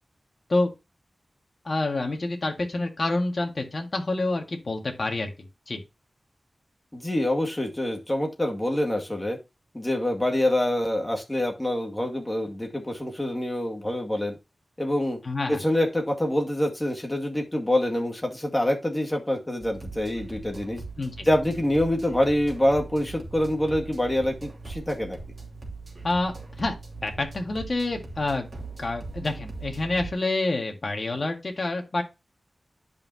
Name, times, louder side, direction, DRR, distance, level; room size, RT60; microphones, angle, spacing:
voice 1, 1.6-5.3 5.7-5.8 15.2-15.6 21.0-21.3 26.0-26.8 27.0-28.5 28.8-32.0, left 2 dB, 50° left, 3 dB, 1.8 m, -27 dB
voice 2, 6.9-9.4 9.7-14.3 14.8-15.2 15.5-20.8 21.3-25.2, left 1 dB, 15° left, 1 dB, 2.1 m, -26 dB
sound 1, 19.6-30.1, right 3 dB, 50° right, 2.9 m, -40 dB
10.5 x 5.7 x 2.8 m, 0.25 s
wide cardioid pair, 95°, 0 cm